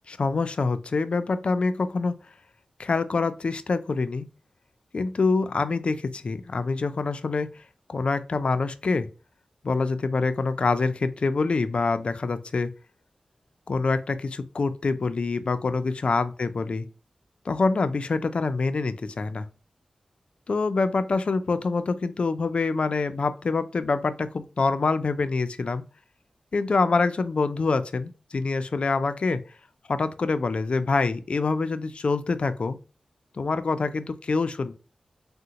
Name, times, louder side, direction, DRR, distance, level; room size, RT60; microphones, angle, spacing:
voice 1, 0.1-2.2 2.8-4.3 4.9-7.5 7.9-9.1 9.6-12.7 13.7-16.9 17.5-19.5 20.5-25.8 26.5-29.4 29.9-32.8 33.4-34.7, left 4 dB, 60° left, 11 dB, 0.3 m, -25 dB
3.7 x 2.1 x 2.8 m, 0.35 s
cardioid pair, 60°, 2 cm